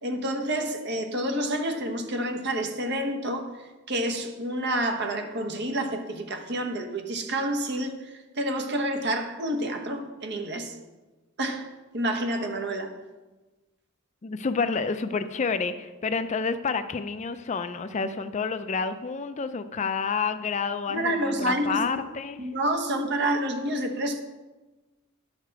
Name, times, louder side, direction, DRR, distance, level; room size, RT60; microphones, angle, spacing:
voice 1, 0.0-3.5 3.9-10.8 11.4-11.7 11.9-12.9 20.9-21.9 22.4-24.2, right 1 dB, 55° right, 4 dB, 1.1 m, -28 dB
voice 2, 14.2-22.4, left 5 dB, 35° left, 10 dB, 0.4 m, -29 dB
10.0 x 6.6 x 4.7 m, 1.2 s
head